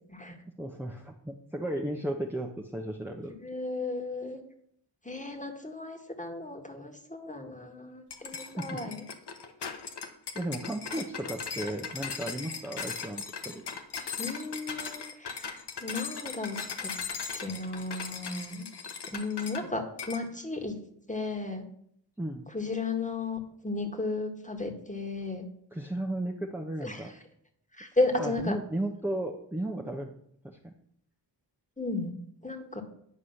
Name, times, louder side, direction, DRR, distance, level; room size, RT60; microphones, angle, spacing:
voice 1, 0.6-3.3 8.6-8.8 10.3-13.6 22.2-22.4 25.7-27.1 28.2-30.1 30.4-30.7, right 1 dB, 5° right, 0 dB, 1.1 m, -34 dB
voice 2, 3.4-4.4 5.0-9.0 14.2-16.9 17.3-18.7 19.0-20.8 21.1-21.7 22.5-25.5 26.8-27.1 27.7-28.6 31.8-32.1 32.4-32.8, left 3 dB, 15° left, 4 dB, 1.9 m, -34 dB
sound 1, 8.1-19.7 20.0-20.2, left 5 dB, 65° left, 1.1 m, -38 dB
9.8 x 4.8 x 5.9 m, 0.69 s
cardioid pair, 45°, 45 cm